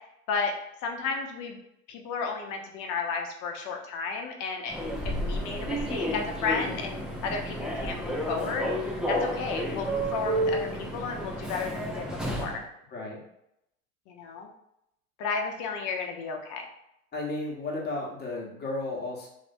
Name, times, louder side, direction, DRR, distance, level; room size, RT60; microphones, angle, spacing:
voice 1, 0.8-1.6 1.9-8.7 9.1-12.6 14.1-14.5 15.2-16.6, left 5 dB, 45° left, 3 dB, 0.8 m, -33 dB
Human voice / Subway metro underground, 4.7-12.6, right 1 dB, ahead, 0.4 m, -31 dB
voice 2, 12.9-13.2 17.1-19.3, left 2 dB, 25° left, -2 dB, 1.0 m, -33 dB
3.1 x 2.9 x 2.6 m, 0.78 s
hypercardioid pair, 95°, 42 cm